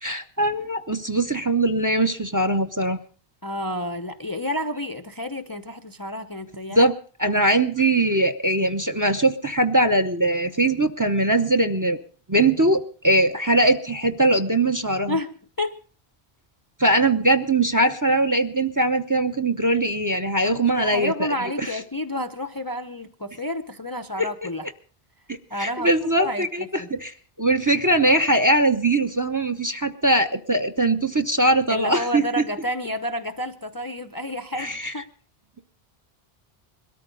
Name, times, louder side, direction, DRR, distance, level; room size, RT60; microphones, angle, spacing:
voice 1, 0.0-3.0 6.7-6.9 7.2-12.0 12.3-15.2 16.8-21.3 24.2-24.3 25.6-27.1 27.4-32.4 34.6-34.9, right 2 dB, 20° right, 9 dB, 0.8 m, -21 dB
voice 2, 3.4-6.9 15.1-15.8 20.4-24.7 25.5-26.9 31.7-35.1, left 1 dB, 25° left, 7 dB, 0.6 m, -30 dB
22.0 x 13.5 x 3.9 m, 0.39 s
omnidirectional pair, 1.0 m